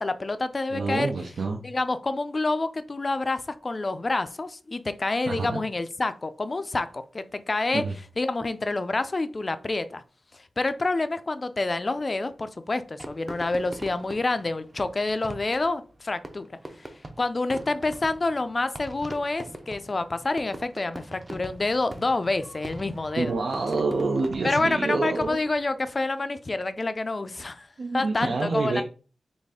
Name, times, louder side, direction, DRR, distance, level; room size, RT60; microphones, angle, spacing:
voice 1, 0.0-1.1 1.6-7.8 8.2-10.0 10.3-16.5 16.8-16.9 17.2-23.3 24.4-27.7 27.9-28.8, left 2 dB, 35° left, 12 dB, 0.4 m, -28 dB
voice 2, 0.7-1.6 5.3-5.6 7.7-7.9 23.2-25.4 27.8-28.8, right 3 dB, 70° right, 1 dB, 0.6 m, -27 dB
Fireworks, 13.0-25.7, right 1 dB, 20° right, 0.6 m, -42 dB
4.1 x 3.2 x 3.5 m, 0.37 s
wide cardioid pair, 110°, 0 cm